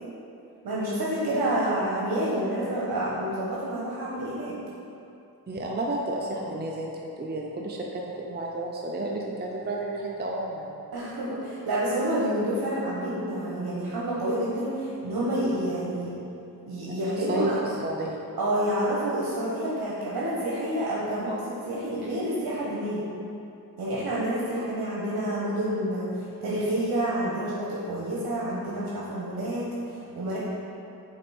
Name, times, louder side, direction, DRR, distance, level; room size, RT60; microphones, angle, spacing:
voice 1, 0.6-4.5 10.9-16.1 16.7-17.6 18.4-23.0 23.8-30.4, right 1 dB, 65° right, -6 dB, 1.3 m, -28 dB
voice 2, 5.5-10.8 17.2-18.3, right 1 dB, 25° right, -1 dB, 0.6 m, -32 dB
5.2 x 4.2 x 4.3 m, 2.8 s
cardioid pair, 60°, 37 cm